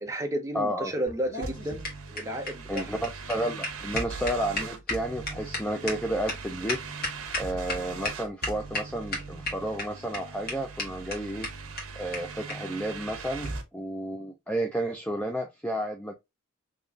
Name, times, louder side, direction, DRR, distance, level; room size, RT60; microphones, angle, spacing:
voice 1, 0.0-3.0, right 1 dB, 15° right, 0.7 m, -33 dB
voice 2, 0.5-0.9 2.7-6.8 7.4-11.5 12.0-16.1, right 1 dB, 5° left, 0.3 m, -31 dB
sound 1, 1.1-7.8 8.0-8.1 8.4-8.8 9.1-9.8 10.1-10.2 10.5-10.6 10.8-10.9 11.1-11.2 11.4-11.5 11.8-11.9 12.1-12.2 12.5-12.6 13.4-13.6, left 2 dB, 40° left, 1.6 m, -32 dB
sound 2, 1.4-13.6, right 4 dB, 80° right, 0.8 m, -40 dB
3.8 x 3.0 x 2.3 m
head